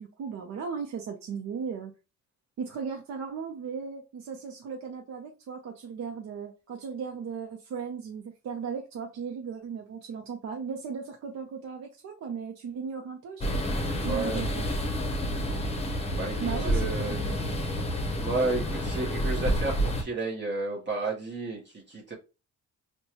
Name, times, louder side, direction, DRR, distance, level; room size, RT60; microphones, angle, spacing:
voice 1, 0.0-1.9 2.6-13.4 14.0-14.7 16.4-17.5, right 6 dB, 65° right, 0.7 m, -36 dB
sound 1, 13.4-20.0, equal, 20° left, 0.8 m, -29 dB
voice 2, 14.0-14.5 16.1-17.2 17.8-22.1, right 3 dB, 35° right, 1.0 m, -32 dB
4.4 x 2.2 x 2.8 m
cardioid pair, 90°, 30 cm